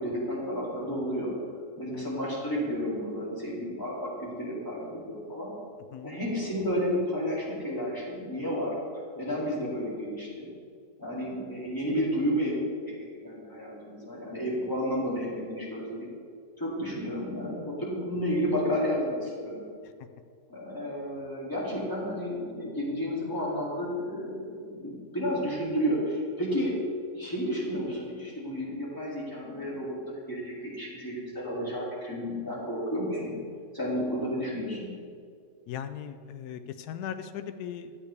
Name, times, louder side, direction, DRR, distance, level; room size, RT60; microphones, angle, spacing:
voice 1, 0.0-1.3 1.8-5.5 6.0-8.7 9.1-10.5 11.0-12.6 12.9-16.1 16.6-19.6 20.5-26.8 27.1-33.4 33.7-34.9, equal, 15° left, -6 dB, 2.4 m, -31 dB
voice 2, 35.7-38.0, left 9 dB, 85° left, 10 dB, 1.1 m, -38 dB
11.5 x 8.1 x 3.3 m, 2.2 s
omnidirectional pair, 1.6 m